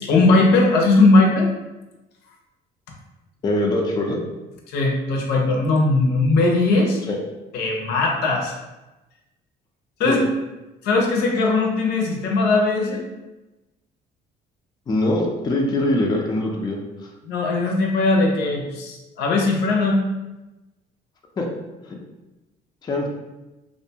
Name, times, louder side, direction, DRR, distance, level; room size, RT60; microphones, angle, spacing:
voice 1, 0.0-1.5 4.7-7.0 7.5-8.5 10.0-10.3 10.8-13.1 17.2-20.0, left 3 dB, 75° left, 0 dB, 0.6 m, -19 dB
voice 2, 3.4-4.2 7.1-7.2 10.0-10.2 14.9-17.1 21.4-21.5 21.8-22.0 22.8-23.1, left 1 dB, 25° left, 0 dB, 0.4 m, -23 dB
2.5 x 2.2 x 2.7 m, 1.0 s
cardioid pair, 110°, 17 cm